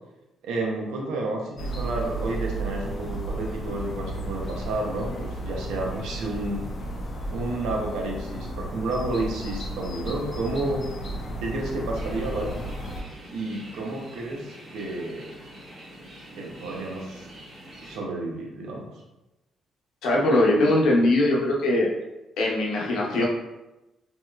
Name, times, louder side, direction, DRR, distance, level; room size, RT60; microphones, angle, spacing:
voice 1, 0.4-6.6 7.3-10.8 11.4-12.5 13.3-15.3 16.3-17.3 17.8-18.9, right 2 dB, 85° right, -1 dB, 0.6 m, -31 dB
sound 1, 1.6-13.0, right 1 dB, 40° left, 0.6 m, -33 dB
sound 2, 11.9-18.0, right 1 dB, 45° right, 1.2 m, -45 dB
voice 2, 20.0-21.9 22.4-23.2, left 1 dB, 80° left, -2 dB, 0.7 m, -21 dB
2.8 x 2.8 x 2.3 m, 0.99 s
cardioid pair, 90°, 0 cm